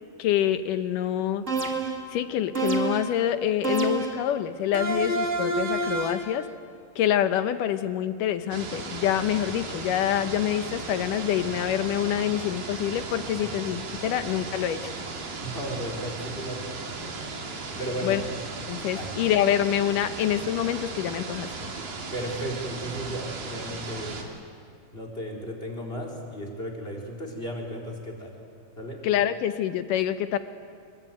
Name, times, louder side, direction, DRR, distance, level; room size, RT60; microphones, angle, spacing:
voice 1, 0.2-1.5 2.1-6.5 7.0-14.9 18.0-18.2 18.7-21.7 29.0-30.4, left 10 dB, 70° left, 10 dB, 2.3 m, -26 dB
sound 1, 1.5-2.1 2.5-3.2 3.6-4.3 4.7-6.3, right 3 dB, 35° right, 1.3 m, -28 dB
sound 2, 8.5-24.2, right 3 dB, 65° right, 4.4 m, -36 dB
voice 2, 15.4-16.8 17.8-18.2 18.9-19.2 22.1-24.2 24.9-28.3 28.8-29.0, equal, 15° left, 1 dB, 4.2 m, -34 dB
27.0 x 23.5 x 9.3 m, 2.2 s
omnidirectional pair, 4.2 m